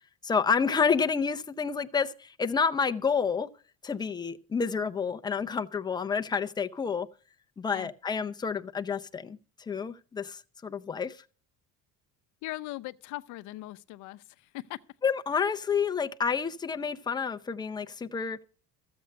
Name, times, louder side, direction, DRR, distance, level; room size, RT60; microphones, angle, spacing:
voice 1, 0.2-3.5 3.8-7.1 7.6-9.4 9.7-11.2 15.0-18.4, left 6 dB, 15° left, 0.5 m, -29 dB
voice 2, 12.4-14.8, left 18 dB, 65° left, 0.7 m, -40 dB
14.5 x 7.8 x 6.3 m
cardioid pair, 175°, 33 cm